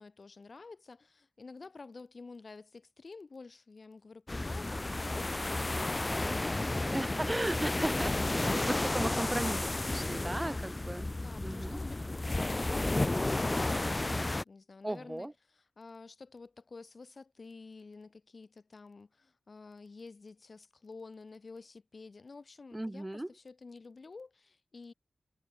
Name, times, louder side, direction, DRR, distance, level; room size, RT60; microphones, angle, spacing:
voice 1, 0.0-7.0 10.1-24.9, left 4 dB, 50° left, 3.7 m, -50 dB
sound 1, 4.3-14.4, left 2 dB, 25° left, 0.4 m, -32 dB
voice 2, 6.9-11.1 11.4-11.8 14.8-15.3 22.7-23.3, right 1 dB, 15° right, 2.4 m, -36 dB
wide cardioid pair, 115°, 0 cm